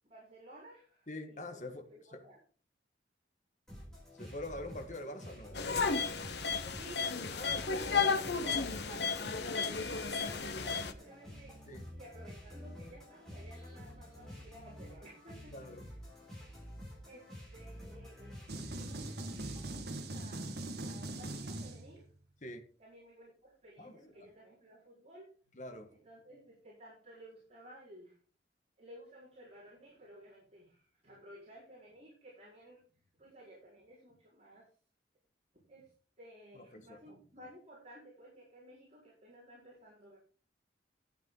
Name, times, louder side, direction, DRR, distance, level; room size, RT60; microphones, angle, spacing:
voice 1, 0.1-2.4 6.7-7.4 7.9-11.6 11.9-15.5 17.0-19.0 20.1-22.1 22.8-25.6 25.9-28.2 28.8-32.8 33.2-34.6 35.7-35.9 36.2-40.2, right 1 dB, 35° right, 4.6 m, -55 dB
voice 2, 1.1-2.2 4.1-5.6 7.3-8.1 11.7-11.9 15.5-15.9 22.4-22.6 23.8-24.3 25.5-25.9 36.5-37.2, left 1 dB, 45° left, 1.6 m, -45 dB
sound 1, 3.7-19.8, equal, 5° left, 6.6 m, -50 dB
sound 2, 5.5-10.9, left 5 dB, 70° left, 0.9 m, -33 dB
sound 3, 18.5-22.2, right 2 dB, 65° right, 1.6 m, -41 dB
12.5 x 8.9 x 3.9 m
head